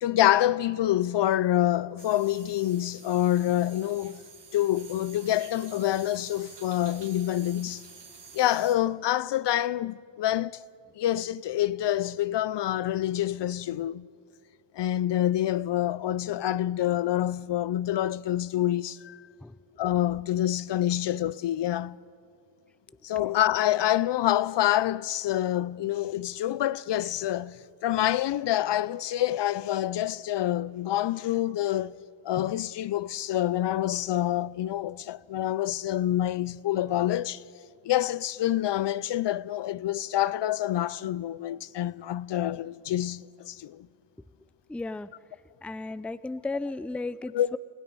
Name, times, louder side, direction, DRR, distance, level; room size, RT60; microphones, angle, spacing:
voice 1, 0.0-4.2 4.5-7.8 8.3-10.6 11.0-14.1 14.7-19.2 19.8-22.0 23.0-32.0 32.2-37.4 37.8-43.9 47.3-47.6, left 13 dB, 60° left, 0.5 m, -27 dB
sound 1, 2.0-8.8, right 5 dB, 60° right, 2.2 m, -49 dB
voice 2, 44.7-45.1 45.6-47.6, left 3 dB, 5° left, 0.4 m, -34 dB
29.0 x 16.5 x 5.4 m
cardioid pair, 75°, 48 cm